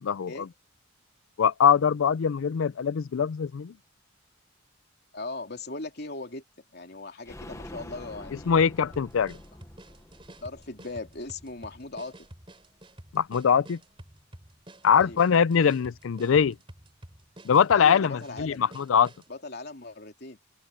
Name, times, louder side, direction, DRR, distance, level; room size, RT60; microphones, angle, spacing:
voice 1, 0.0-0.5 1.4-3.7 8.5-9.4 13.1-13.8 14.8-16.6 17.4-19.1, left 7 dB, 80° left, 0.4 m, -22 dB
voice 2, 5.1-6.4 6.7-8.6 10.4-12.3 14.9-15.2 17.7-18.7 19.3-20.4, left 2 dB, 55° left, 3.3 m, -39 dB
sound 1, 7.2-12.9 13.2-13.3 13.6-13.7, left 1 dB, 15° left, 0.9 m, -47 dB
sound 2, 8.6-19.3, right 1 dB, 25° right, 3.3 m, -49 dB
open air
head